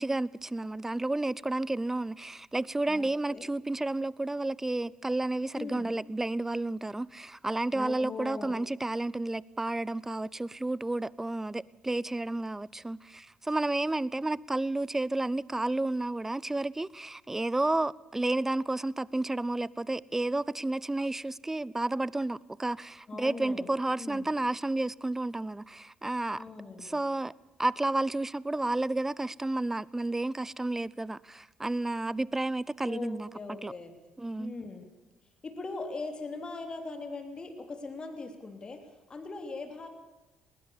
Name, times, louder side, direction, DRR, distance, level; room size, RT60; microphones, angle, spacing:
voice 1, 0.0-26.4 26.8-27.3 27.6-33.3 33.6-33.7 34.2-34.5, right 2 dB, 15° right, 0.6 m, -31 dB
voice 2, 2.9-3.5 5.5-5.9 7.7-8.5 23.1-24.3 26.3-27.0 32.8-33.9 34.4-34.9 35.4-39.9, left 3 dB, 30° left, 3.5 m, -40 dB
20.5 x 19.0 x 7.2 m
hypercardioid pair, 50°, 3 cm